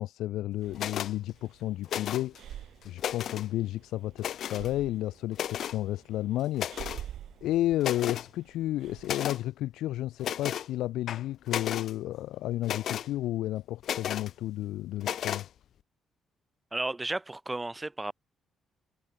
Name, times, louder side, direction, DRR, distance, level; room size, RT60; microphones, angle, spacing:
voice 1, 0.0-2.5 2.8-7.1 7.4-15.5, left 14 dB, 85° left, 1.5 m, -32 dB
Breathing, 0.6-9.1, right 11 dB, 70° right, 1.9 m, -48 dB
sound 1, 0.7-1.1 1.8-2.4 2.8-3.5 4.2-4.7 5.3-5.8 6.5-7.0 7.4-7.5 7.8-8.3 9.0-9.4 10.2-10.7 11.1-11.9 12.6-13.1 13.8-14.3 15.0-15.5, left 10 dB, 70° left, 0.5 m, -34 dB
voice 2, 16.7-18.1, right 2 dB, 15° right, 0.6 m, -33 dB
cardioid pair, 90°, 0 cm